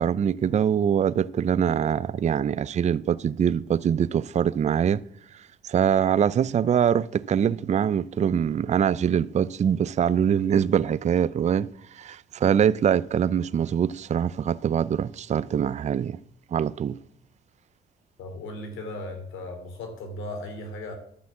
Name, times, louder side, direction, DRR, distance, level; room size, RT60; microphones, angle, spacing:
voice 1, 0.0-5.0 5.6-16.2 16.5-17.0, right 8 dB, 35° right, 0.4 m, -23 dB
voice 2, 18.2-20.9, left 1 dB, 80° left, 2.9 m, -36 dB
12.0 x 5.9 x 7.4 m
cardioid pair, 90°, 20 cm